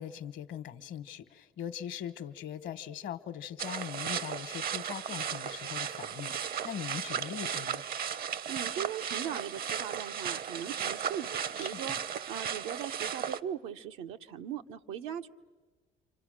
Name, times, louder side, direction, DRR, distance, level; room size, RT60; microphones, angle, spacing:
voice 1, 0.0-7.8 11.6-12.0, left 9 dB, 70° left, 12 dB, 1.1 m, -41 dB
sound 1, 3.6-13.4, right 8 dB, 50° right, 0.7 m, -35 dB
voice 2, 8.5-15.3, right 9 dB, 85° right, 6 dB, 0.8 m, -39 dB
29.0 x 25.5 x 6.5 m, 1.3 s
supercardioid pair, 90°, 20 cm